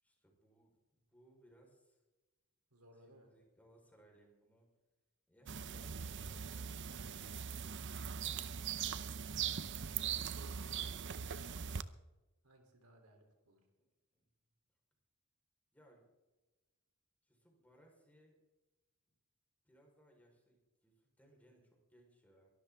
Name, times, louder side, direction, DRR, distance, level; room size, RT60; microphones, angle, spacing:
voice 1, 0.0-2.0 2.9-4.7 5.3-8.0 14.1-14.3 15.7-16.1 17.2-18.4 19.6-22.5, right 1 dB, 5° left, 0 dB, 4.4 m, -67 dB
voice 2, 2.7-3.3 6.8-7.2 9.8-11.8 12.4-13.7, right 1 dB, 80° right, 4 dB, 3.4 m, -62 dB
sound 1, 5.5-11.8, right 7 dB, 55° right, 0.6 m, -41 dB
23.0 x 12.5 x 3.6 m, 1.1 s
head